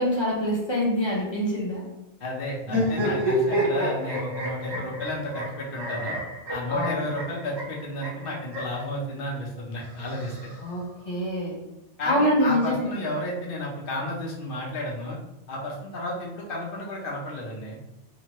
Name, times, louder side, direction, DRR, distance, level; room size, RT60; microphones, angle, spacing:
voice 1, 0.0-1.8 6.7-7.0 10.6-11.6 12.0-12.9, equal, 30° left, -4 dB, 0.7 m, -25 dB
voice 2, 2.2-6.2 6.5-10.3 12.0-15.2 15.5-17.8, left 1 dB, 55° left, -2 dB, 0.9 m, -32 dB
sound 1, 2.6-8.8 9.8-10.9, equal, 25° right, 0.8 m, -29 dB
2.9 x 2.1 x 2.9 m, 0.90 s
omnidirectional pair, 1.2 m